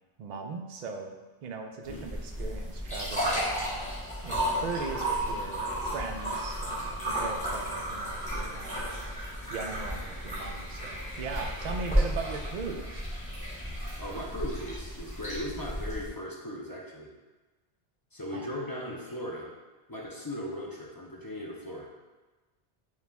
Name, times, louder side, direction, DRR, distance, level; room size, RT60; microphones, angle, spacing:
voice 1, 0.2-3.4 4.2-8.9 9.5-13.0 18.3-18.5, right 4 dB, 55° right, 3 dB, 0.5 m, -39 dB
sound 1, 1.8-16.1, equal, 5° left, 1.2 m, -33 dB
voice 2, 14.0-17.1 18.1-19.5 19.9-21.9, left 1 dB, 30° left, -3 dB, 0.4 m, -38 dB
5.0 x 2.3 x 3.4 m, 1.2 s
omnidirectional pair, 1.0 m